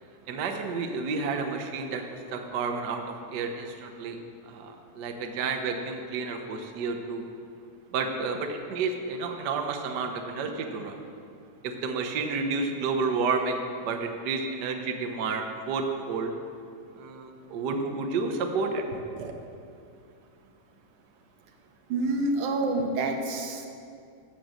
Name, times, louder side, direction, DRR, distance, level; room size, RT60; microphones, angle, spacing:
voice 1, 0.3-4.2 4.5-7.2 7.9-11.0 11.6-16.3 17.0-19.3, right 4 dB, 65° right, 4 dB, 1.0 m, -31 dB
voice 2, 21.9-23.7, right 2 dB, 85° right, 4 dB, 2.6 m, -27 dB
15.0 x 7.6 x 6.6 m, 2.4 s
omnidirectional pair, 3.4 m